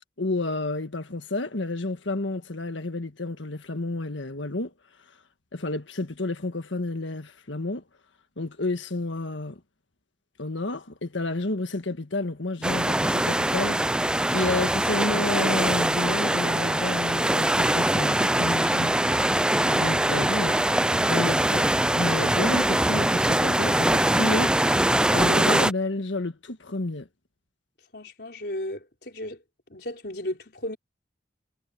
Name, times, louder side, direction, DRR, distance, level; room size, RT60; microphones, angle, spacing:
voice 1, 0.2-4.7 5.5-7.8 8.4-9.6 10.4-13.8 14.3-19.0 19.7-20.6 20.9-21.7 22.0-24.6 25.1-27.1, left 2 dB, 90° left, 1.6 m, -30 dB
sound 1, 12.6-25.7, right 1 dB, 5° right, 0.4 m, -23 dB
voice 2, 27.9-29.4 29.7-30.8, left 1 dB, 60° left, 4.7 m, -34 dB
head